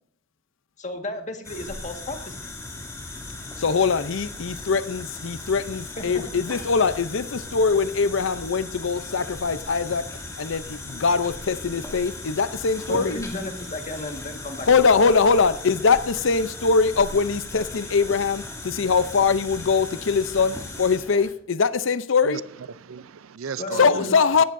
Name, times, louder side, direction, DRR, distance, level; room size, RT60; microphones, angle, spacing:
voice 1, 0.8-2.5 6.0-6.2 12.9-15.0 23.6-24.2, left 2 dB, 35° left, 1.7 m, -34 dB
sound 1, 1.4-21.3, left 2 dB, 15° left, 2.7 m, -37 dB
voice 2, 3.6-10.1 10.4-13.2 14.7-22.4 23.8-24.4, left 5 dB, 65° left, 0.6 m, -22 dB
voice 3, 22.2-24.1 24.4-24.5, right 6 dB, 80° right, 0.5 m, -36 dB
17.5 x 14.5 x 2.7 m
head